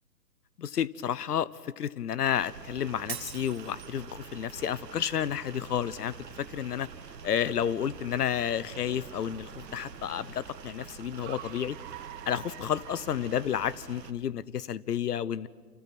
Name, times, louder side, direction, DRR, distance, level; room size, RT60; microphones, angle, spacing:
voice 1, 0.6-6.9 7.2-11.8 12.3-15.5, left 9 dB, 70° left, 20 dB, 1.0 m, -31 dB
sound 1, 2.4-14.1, right 6 dB, 85° right, 1.7 m, -46 dB
Shatter, 3.1-4.1, right 9 dB, 60° right, 2.1 m, -41 dB
Car, 6.1-13.8, right 12 dB, 30° right, 2.5 m, -51 dB
29.5 x 27.5 x 6.1 m, 1.5 s
hypercardioid pair, 140°, 48 cm